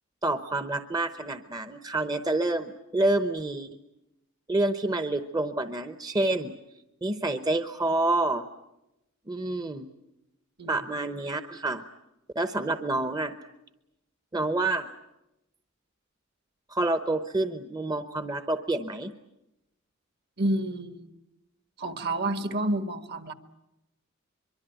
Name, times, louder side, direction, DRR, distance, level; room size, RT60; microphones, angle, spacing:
voice 1, 0.2-3.7 4.5-6.5 7.0-8.4 9.3-9.9 10.7-11.8 12.3-13.4 14.3-14.9 16.7-19.1, right 2 dB, 20° right, 9 dB, 0.9 m, -28 dB
voice 2, 20.4-21.1 21.8-23.3, right 1 dB, 50° right, 10 dB, 1.6 m, -29 dB
23.5 x 23.5 x 9.1 m, 0.91 s
head